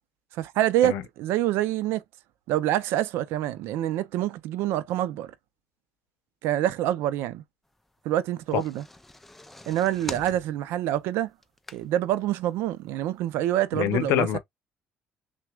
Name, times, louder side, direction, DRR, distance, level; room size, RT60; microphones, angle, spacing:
voice 1, 0.3-2.0 2.5-5.3 6.4-7.4 8.0-8.8 9.7-11.3 11.7-14.4, right 13 dB, 85° right, 0.5 m, -26 dB
sound 1, 8.3-12.2 12.7-12.8 13.0-13.1, left 1 dB, 5° left, 0.3 m, -42 dB
voice 2, 13.7-14.4, left 11 dB, 80° left, 0.7 m, -25 dB
6.0 x 2.2 x 2.3 m
cardioid pair, 170°, 4 cm